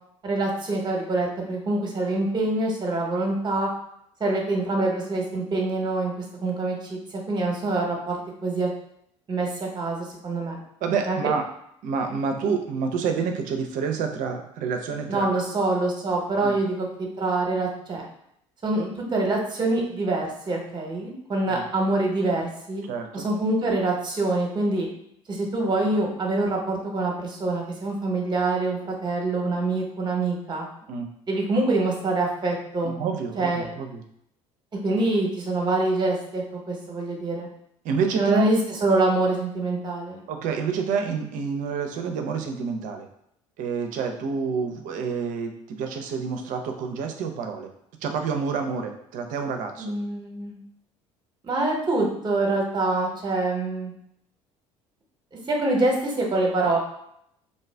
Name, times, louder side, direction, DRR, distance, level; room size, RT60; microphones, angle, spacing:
voice 1, 0.2-3.7 4.2-6.1 6.4-8.7 9.3-10.6 11.1-11.2 15.1-16.9 17.2-18.0 18.6-22.8 23.1-24.9 25.3-30.7 31.3-33.0 33.4-33.7 34.8-37.5 38.2-40.2 49.8-50.6 51.4-53.9 55.5-56.8, right 2 dB, 30° right, 0 dB, 0.9 m, -25 dB
voice 2, 10.8-11.4 11.8-15.3 16.4-16.5 21.5-21.7 22.9-23.3 30.9-31.1 32.8-34.0 37.8-38.5 40.3-43.1 43.6-47.7 48.0-49.9, right 5 dB, 55° right, 5 dB, 0.5 m, -28 dB
2.6 x 2.3 x 3.3 m, 0.74 s
hypercardioid pair, 60°, 16 cm